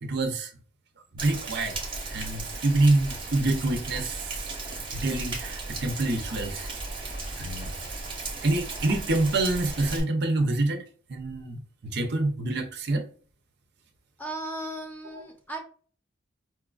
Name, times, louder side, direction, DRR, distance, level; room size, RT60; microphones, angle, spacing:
voice 1, 0.0-0.5 1.1-1.8 2.1-4.5 4.9-6.7 7.3-7.7 8.4-10.8 11.1-13.1 15.1-15.2, right 2 dB, 60° right, 0.6 m, -27 dB
Rain, 1.2-10.0, right 3 dB, 25° right, 0.8 m, -36 dB
voice 2, 14.2-15.6, right 1 dB, 10° left, 0.7 m, -36 dB
4.5 x 2.4 x 2.3 m
head